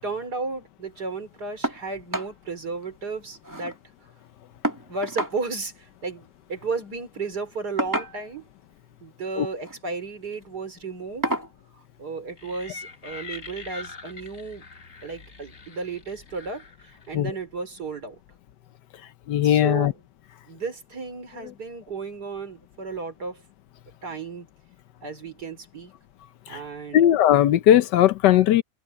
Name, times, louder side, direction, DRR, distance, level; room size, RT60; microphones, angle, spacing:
voice 1, 0.0-3.8 4.9-8.5 9.0-11.3 11.7-14.7 15.0-18.2 19.4-19.9 20.5-23.4 24.0-24.5 25.0-25.9 26.5-27.0, right 4 dB, 60° right, 4.4 m, -34 dB
sound 1, 1.6-1.8 2.1-2.3 2.7-2.8 3.1-3.8 4.6-5.4 6.6-6.8 7.8-8.4 9.5-9.8 10.3-10.4 11.2-11.5 12.8-12.9 13.4-13.5, right 1 dB, 10° right, 1.9 m, -30 dB
sound 2, 12.4-17.2, left 4 dB, 45° left, 2.1 m, -43 dB
voice 2, 19.3-19.9 26.5-26.6 26.9-28.6, left 11 dB, 75° left, 1.3 m, -18 dB
omnidirectional pair, 1.9 m